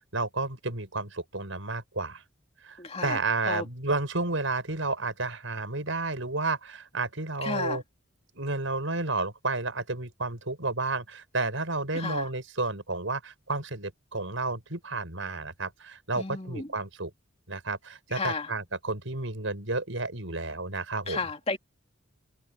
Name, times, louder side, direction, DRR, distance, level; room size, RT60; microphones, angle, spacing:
voice 1, 0.1-2.2 2.6-7.8 8.3-17.1 17.5-21.2, right 3 dB, 70° right, 5.9 m, -31 dB
voice 2, 2.8-3.2 3.5-3.7 7.4-7.8 11.9-12.3 16.2-16.7 18.1-18.5 21.1-21.6, left 3 dB, 30° left, 2.5 m, -32 dB
head